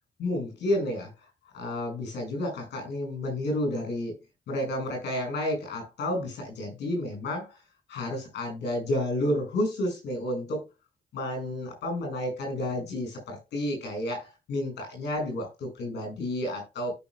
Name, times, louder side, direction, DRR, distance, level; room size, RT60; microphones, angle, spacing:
voice 1, 0.2-1.1 1.5-4.2 4.5-7.6 7.9-10.6 11.1-16.9, left 1 dB, 90° left, 6.4 m, -31 dB
17.0 x 6.1 x 2.3 m
cardioid pair, 55°, 17 cm